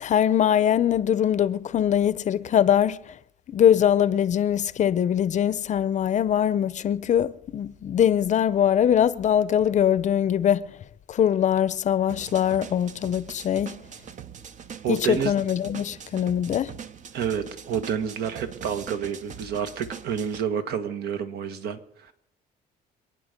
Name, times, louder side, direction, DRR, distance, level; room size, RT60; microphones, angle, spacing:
voice 1, 0.0-3.1 3.5-10.8 11.1-13.8 14.9-16.7, left 9 dB, 45° left, 0.6 m, -22 dB
sound 1, 12.1-20.4, right 8 dB, 45° right, 0.8 m, -42 dB
voice 2, 14.8-15.3 17.1-22.1, right 8 dB, 70° right, 1.5 m, -29 dB
26.5 x 9.6 x 5.2 m
cardioid pair, 110°, 17 cm